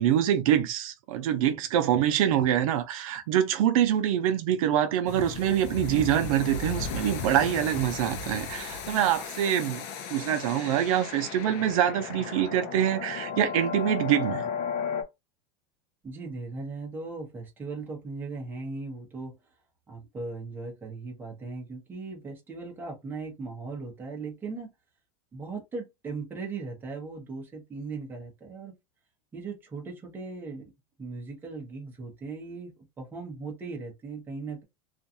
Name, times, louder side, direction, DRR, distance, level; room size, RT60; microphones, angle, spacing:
voice 1, 0.0-9.8 10.1-14.5, right 10 dB, 75° right, 0.6 m, -25 dB
sound 1, 5.1-15.0, left 6 dB, 45° left, 0.5 m, -35 dB
voice 2, 16.0-19.3 19.9-24.7 25.3-28.7 29.3-30.6 31.0-32.7 33.0-34.6, right 3 dB, 10° right, 0.8 m, -38 dB
2.5 x 2.3 x 2.6 m
supercardioid pair, 165°, 18 cm